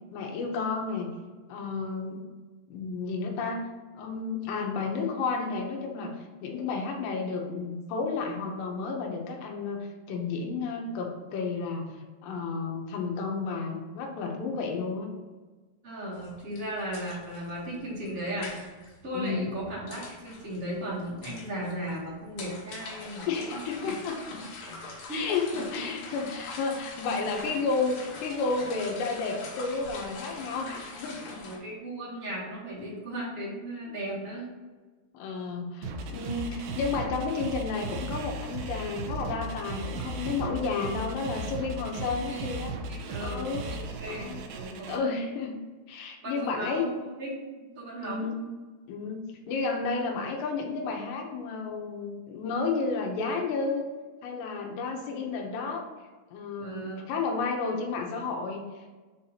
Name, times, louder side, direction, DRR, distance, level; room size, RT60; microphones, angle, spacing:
voice 1, 0.1-1.1 1.5-2.2 2.7-3.6 3.9-15.2 19.1-19.5 23.3-24.4 25.1-31.4 35.1-42.7 43.2-43.6 44.1-44.4 44.9-45.6 45.9-46.8 48.0-48.4 48.9-53.9 54.2-55.8 56.3-58.9, left 4 dB, 90° left, 1 dB, 3.1 m, -32 dB
voice 2, 15.8-18.5 19.0-23.9 25.1-25.6 31.4-34.5 42.1-42.5 42.9-45.0 46.2-47.4 47.7-48.3 56.6-57.1, right 1 dB, 55° right, -8 dB, 0.9 m, -36 dB
sound 1, 16.1-31.6, left 3 dB, 70° left, 2.9 m, -44 dB
sound 2, 35.8-45.0, right 2 dB, 85° right, 2.2 m, -36 dB
7.1 x 2.8 x 5.7 m, 1.3 s
omnidirectional pair, 4.9 m